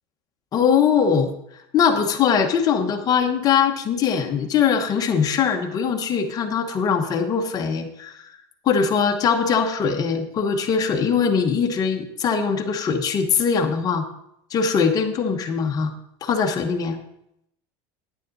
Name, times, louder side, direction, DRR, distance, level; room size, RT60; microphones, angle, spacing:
voice 1, 0.5-1.3 1.7-8.2 8.6-14.0 14.5-15.9 16.2-17.0, left 6 dB, 25° left, 4 dB, 1.0 m, -21 dB
9.9 x 9.7 x 3.9 m, 0.77 s
cardioid pair, 160°, 14 cm